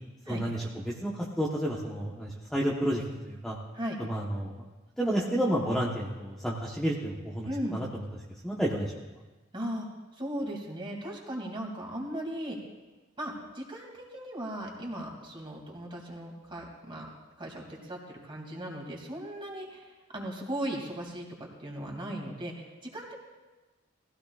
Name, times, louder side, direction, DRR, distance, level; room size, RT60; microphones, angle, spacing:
voice 1, 0.3-0.6 1.0-3.6 4.0-4.6 5.0-8.0 8.4-8.9, equal, 5° left, -5 dB, 1.1 m, -30 dB
voice 2, 7.4-7.8 9.5-9.9 10.1-12.6 13.2-17.1 17.4-23.1, right 1 dB, 25° right, -1 dB, 2.6 m, -37 dB
20.0 x 15.5 x 2.5 m, 1.2 s
head